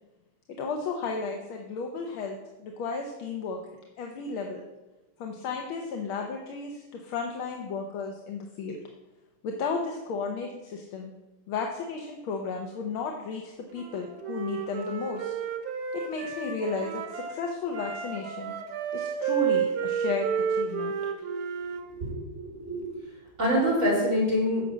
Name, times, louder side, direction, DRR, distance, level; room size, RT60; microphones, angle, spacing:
voice 1, 0.6-3.6 4.0-4.6 5.2-8.8 9.4-11.1 11.5-15.3 15.9-18.5 18.9-20.9, left 4 dB, 85° left, 2 dB, 1.8 m, -33 dB
Wind instrument woodwind instrument, 13.7-17.4 17.7-21.8, right 7 dB, 90° right, 2.0 m, -31 dB
voice 2, 22.0-22.9 23.4-24.6, equal, 35° right, -6 dB, 4.3 m, -26 dB
9.7 x 6.6 x 6.1 m, 1.0 s
omnidirectional pair, 2.2 m